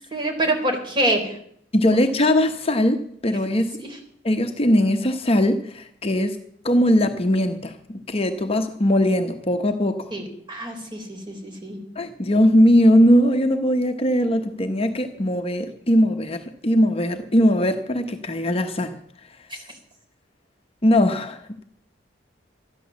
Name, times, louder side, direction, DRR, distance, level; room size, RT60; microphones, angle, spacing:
voice 1, 0.1-1.4 3.8-3.9 10.1-11.8 19.5-19.6, right 1 dB, 25° right, 3.7 m, -26 dB
voice 2, 1.7-3.8 4.2-6.4 6.6-10.1 12.0-19.0 20.8-21.6, equal, 30° left, 0.9 m, -20 dB
13.5 x 10.5 x 7.2 m
head